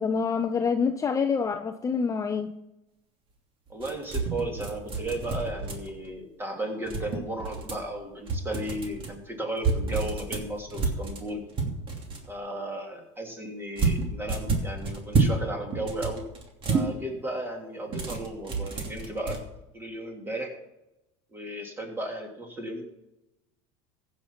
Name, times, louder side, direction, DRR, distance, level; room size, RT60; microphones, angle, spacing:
voice 1, 0.0-2.5, left 5 dB, 20° left, 0.6 m, -26 dB
voice 2, 3.7-11.4 12.3-16.2 16.7-19.4 19.7-20.5 21.3-22.8, right 1 dB, 15° right, 3.1 m, -35 dB
sound 1, 3.8-6.1 6.8-7.9 8.3-9.1 9.6-12.3 13.8-15.4 15.7-16.9 17.9-19.4, right 4 dB, 35° right, 2.8 m, -29 dB
15.5 x 6.6 x 5.9 m
supercardioid pair, 115°, 15 cm